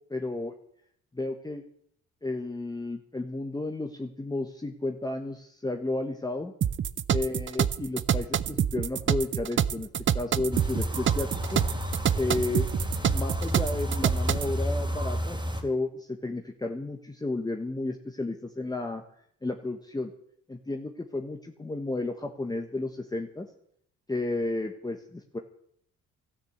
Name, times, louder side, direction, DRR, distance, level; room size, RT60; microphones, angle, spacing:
voice 1, 0.1-0.5 1.1-1.6 2.2-6.5 7.1-9.9 10.1-11.6 12.1-12.7 13.1-19.0 19.4-20.1 20.5-23.5 24.1-25.4, left 2 dB, 15° left, 3 dB, 1.3 m, -32 dB
sound 1, 6.6-14.5, right 9 dB, 40° right, 0.6 m, -27 dB
sound 2, 10.5-15.6, equal, 15° right, 3.2 m, -31 dB
13.0 x 9.9 x 8.0 m, 0.68 s
cardioid pair, 90°, 30 cm